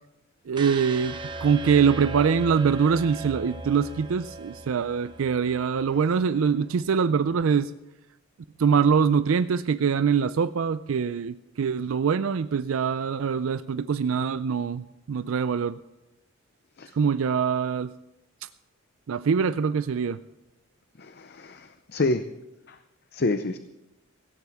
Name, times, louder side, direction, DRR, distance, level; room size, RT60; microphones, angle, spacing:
sound 1, 0.5-6.6, right 3 dB, 20° right, 0.9 m, -38 dB
voice 1, 0.5-7.7 8.6-15.8 16.9-17.9 19.1-20.2, right 6 dB, 80° right, 13 dB, 0.4 m, -24 dB
voice 2, 21.0-22.2 22.7-22.8 23.1-23.6, left 2 dB, 50° left, 10 dB, 0.6 m, -28 dB
17.5 x 16.0 x 3.6 m, 0.97 s
head